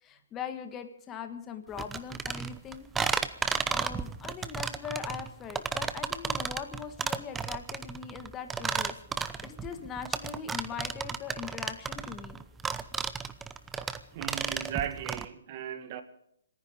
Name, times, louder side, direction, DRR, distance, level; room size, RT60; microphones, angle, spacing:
voice 1, 0.0-2.9 3.7-9.0 9.4-12.4, left 7 dB, 20° left, 1.5 m, -41 dB
sound 1, 1.8-15.3, right 6 dB, 10° right, 0.8 m, -33 dB
voice 2, 14.1-16.0, right 10 dB, 40° right, 1.9 m, -36 dB
26.5 x 10.0 x 5.1 m
hypercardioid pair, 135°, 0 cm